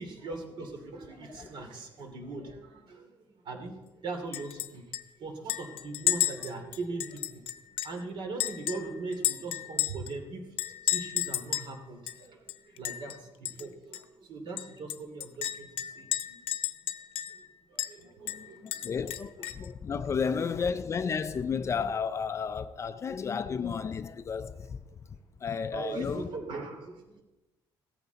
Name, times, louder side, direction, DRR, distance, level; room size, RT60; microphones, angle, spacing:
voice 1, 0.0-4.8 5.2-7.4 7.8-16.4 17.3-17.4 17.7-18.9 19.6-19.7 25.7-27.2, right 3 dB, 55° right, 2.7 m, -40 dB
voice 2, 1.3-1.6 18.2-24.8 25.4-26.3, left 6 dB, 30° left, 0.5 m, -32 dB
Chink clink, 4.3-4.7 4.9-5.0 5.5-8.0 8.4-10.1 10.6-11.7 12.1-12.2 12.5-13.1 13.4-13.6 13.9-14.0 14.6-17.4 17.8-17.9 18.3-19.7, left 13 dB, 75° left, 0.9 m, -32 dB
16.5 x 14.0 x 4.0 m
cardioid pair, 160°, 9 cm